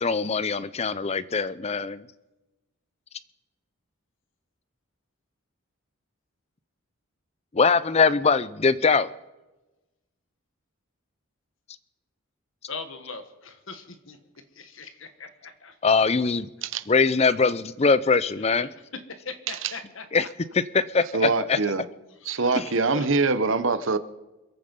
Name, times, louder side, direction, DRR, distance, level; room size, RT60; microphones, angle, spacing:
voice 1, 0.0-2.0 7.5-9.1 15.8-16.5 16.9-18.7 20.1-20.2 20.7-21.6 22.5-22.6, left 4 dB, 30° left, 17 dB, 0.5 m, -22 dB
voice 2, 12.7-14.2 14.6-15.8 18.4-18.7 19.1-20.3 22.2-23.1, left 4 dB, 65° left, 8 dB, 1.6 m, -40 dB
voice 3, 21.1-21.8 22.2-24.0, right 3 dB, 60° right, 12 dB, 0.9 m, -24 dB
26.0 x 8.8 x 5.3 m, 1.1 s
head